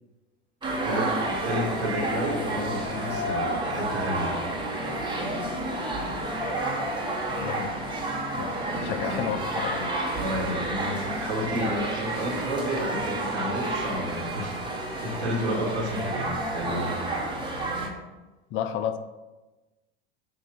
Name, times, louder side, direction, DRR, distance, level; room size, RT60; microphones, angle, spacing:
sound 1, 0.6-17.9, right 1 dB, 15° right, 1.3 m, -30 dB
voice 1, 0.7-4.3 8.6-9.3 10.1-17.0, equal, 90° right, -3 dB, 1.9 m, -31 dB
voice 2, 7.4-7.7 8.4-9.9 18.5-19.0, left 9 dB, 40° left, 10 dB, 0.6 m, -31 dB
7.6 x 2.8 x 5.6 m, 1.1 s
hypercardioid pair, 85°, 33 cm